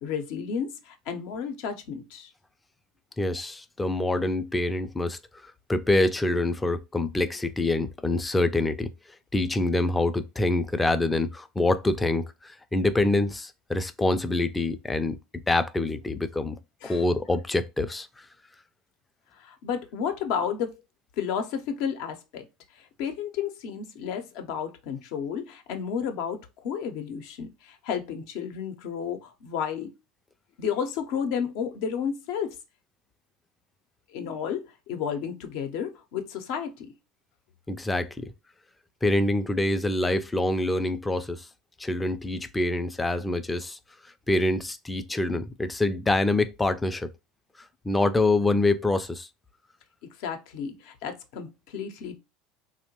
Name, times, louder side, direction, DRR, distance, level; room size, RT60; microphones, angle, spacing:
voice 1, 0.0-2.3 16.8-17.0 19.3-20.8 21.2-22.5 22.7-29.9 30.6-32.6 34.1-36.9 50.2-52.2, left 7 dB, 65° left, 0.6 m, -32 dB
voice 2, 3.2-8.9 9.3-15.2 15.5-18.3 37.7-38.3 39.0-41.5 41.8-43.8 44.3-47.1 47.8-49.3, left 2 dB, 15° left, 0.4 m, -26 dB
2.8 x 2.1 x 2.9 m
hypercardioid pair, 95°, 0 cm